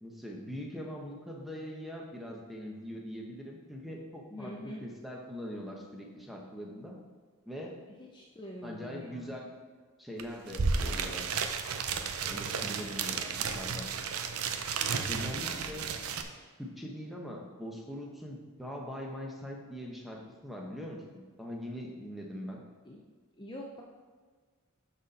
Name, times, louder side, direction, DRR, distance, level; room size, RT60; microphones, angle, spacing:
voice 1, 0.0-7.0 7.5-7.8 8.6-9.5 10.0-11.3 11.7-13.9 15.1-15.9 16.6-22.6, equal, ahead, -1 dB, 1.0 m, -42 dB
voice 2, 4.3-4.8 8.0-9.3 15.2-15.9 22.8-23.0 23.4-23.8, left 1 dB, 20° left, -1 dB, 0.6 m, -45 dB
sound 1, 10.2-10.3 10.5-16.2, right 5 dB, 80° right, 0.6 m, -33 dB
12.0 x 4.2 x 4.1 m, 1.5 s
head